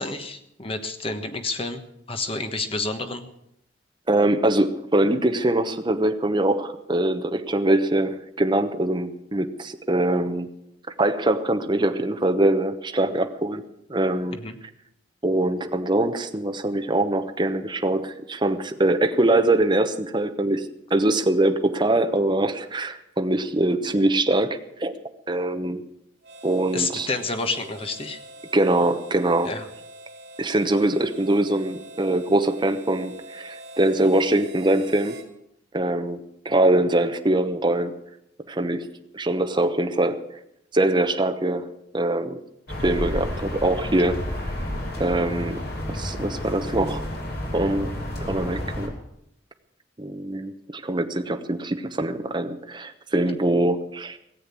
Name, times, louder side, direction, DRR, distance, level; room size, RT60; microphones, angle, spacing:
voice 1, 0.0-1.8 2.1-3.3 14.3-14.6 26.7-28.2 29.4-29.7, left 3 dB, 30° left, 7 dB, 1.3 m, -29 dB
voice 2, 4.1-10.5 11.0-13.6 13.9-14.4 15.2-24.9 25.3-25.8 26.4-27.1 28.5-29.5 30.4-35.2 35.7-38.0 38.5-38.9 39.1-40.2 40.7-42.4 42.8-44.3 45.0-45.6 45.9-47.0 47.5-47.9 48.3-48.9 50.0-54.2, right 1 dB, 25° right, 7 dB, 1.0 m, -23 dB
Harmonica, 26.2-35.3, right 1 dB, 60° right, 2.6 m, -44 dB
sound 1, 42.7-48.9, left 1 dB, 55° left, 3.2 m, -31 dB
18.0 x 7.8 x 8.5 m, 0.78 s
head